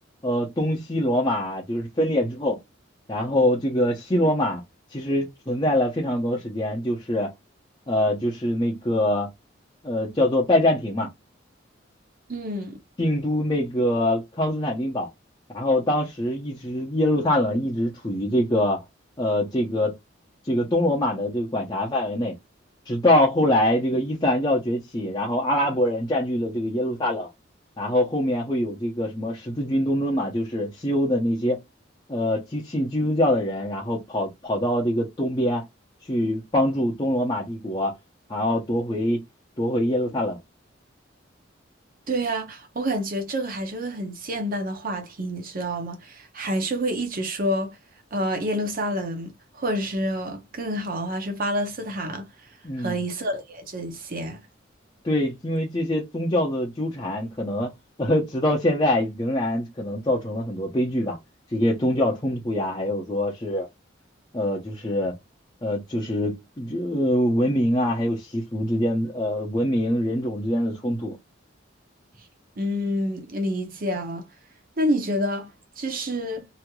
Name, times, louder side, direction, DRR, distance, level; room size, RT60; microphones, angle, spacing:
voice 1, 0.2-2.6 3.1-4.6 4.9-7.3 7.9-9.3 9.8-11.1 13.0-15.1 15.5-18.8 19.2-20.0 20.4-22.4 22.9-27.3 27.8-31.6 32.1-35.7 36.1-37.9 38.3-39.2 39.6-40.4 52.6-53.0 55.0-57.7 58.0-61.2 61.5-63.7 64.3-65.2 65.6-71.2, left 1 dB, 20° left, 0.7 m, -24 dB
voice 2, 12.3-12.8 42.1-47.8 48.1-52.3 52.8-54.4 72.6-74.3 74.8-76.5, equal, 45° right, 0.7 m, -28 dB
3.0 x 2.7 x 2.3 m
head